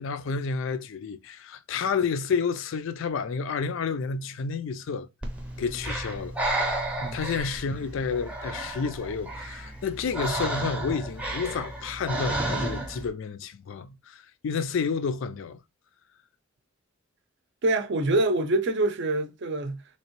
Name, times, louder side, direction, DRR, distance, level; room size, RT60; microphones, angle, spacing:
voice 1, 0.0-5.1 5.6-6.4 7.1-15.6, left 5 dB, 65° left, 0.4 m, -30 dB
Breathing, 5.2-13.1, right 1 dB, 5° right, 0.6 m, -32 dB
voice 2, 17.6-19.8, right 2 dB, 55° right, 0.5 m, -25 dB
3.5 x 2.9 x 2.9 m
head